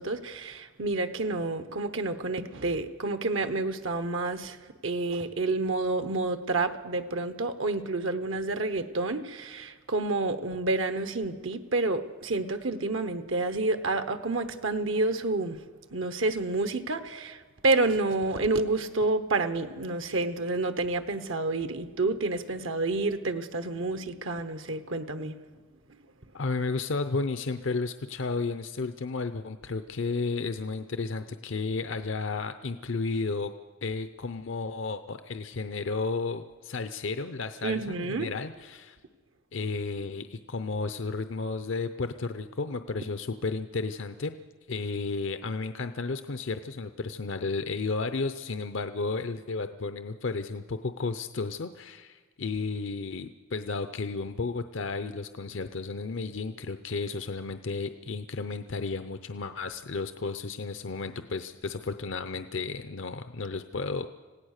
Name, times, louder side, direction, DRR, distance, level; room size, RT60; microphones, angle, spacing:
voice 1, 0.0-4.6 4.8-15.6 15.9-25.4 37.6-38.3, right 2 dB, 70° right, 1.0 m, -29 dB
voice 2, 26.3-33.5 33.8-39.0 39.5-44.3 44.7-64.1, left 4 dB, 65° left, 0.7 m, -33 dB
26.5 x 17.0 x 6.6 m
head